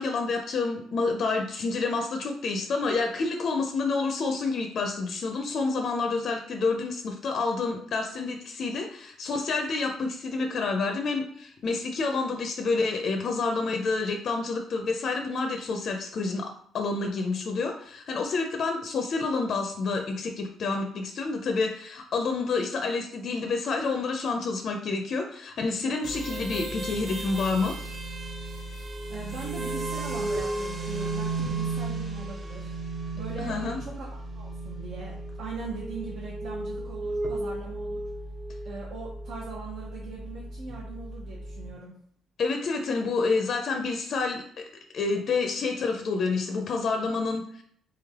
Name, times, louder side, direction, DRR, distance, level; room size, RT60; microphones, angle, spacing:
voice 1, 0.0-27.8 33.4-33.8 42.4-44.6 44.9-47.6, left 4 dB, 50° left, 4 dB, 0.4 m, -28 dB
sound 1, 26.0-41.7, right 2 dB, 30° right, 0.6 m, -34 dB
voice 2, 29.1-32.7 33.1-38.0 38.6-42.0, right 4 dB, 70° right, -3 dB, 0.8 m, -40 dB
3.2 x 3.1 x 3.5 m, 0.65 s
cardioid pair, 130°, 0 cm